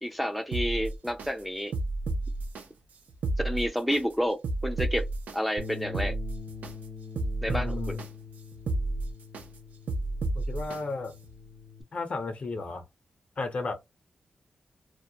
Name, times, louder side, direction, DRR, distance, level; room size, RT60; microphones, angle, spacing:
voice 1, 0.0-1.7 3.4-5.1 5.3-6.2 7.4-8.0, equal, ahead, 0.4 m, -30 dB
sound 1, 0.5-1.3 1.7-2.6 3.1-4.0 4.4-5.4 5.8-6.7 7.2-8.1 8.5-9.4 9.9-10.8 11.2-11.3, right 2 dB, 85° right, 0.5 m, -31 dB
Bass guitar, 5.6-11.8, left 4 dB, 65° right, 1.0 m, -44 dB
voice 2, 7.5-8.1 10.4-11.1 11.9-12.9 13.4-13.8, left 3 dB, 55° left, 0.7 m, -33 dB
2.3 x 2.1 x 2.7 m
cardioid pair, 70°, 3 cm